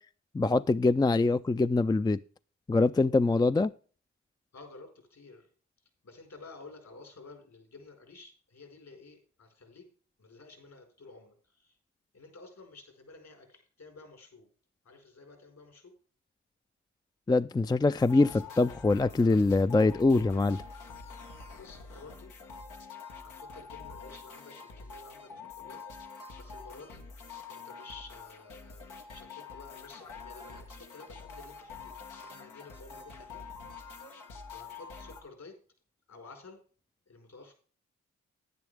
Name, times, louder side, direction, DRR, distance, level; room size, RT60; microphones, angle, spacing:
voice 1, 0.3-2.2 2.7-3.7 17.3-20.6, left 3 dB, 15° left, 13 dB, 0.4 m, -24 dB
voice 2, 4.5-5.5 6.0-9.9 10.2-11.8 12.1-14.5 14.8-15.9 21.5-22.3 23.2-25.8 26.4-27.0 27.5-31.9 32.2-33.5 34.5-35.5 36.1-36.6 37.1-37.5, left 3 dB, 60° left, 4 dB, 4.8 m, -52 dB
sound 1, 18.0-35.2, left 4 dB, 90° left, 1.5 m, -46 dB
10.5 x 9.9 x 3.4 m, 0.41 s
supercardioid pair, 45°, 30 cm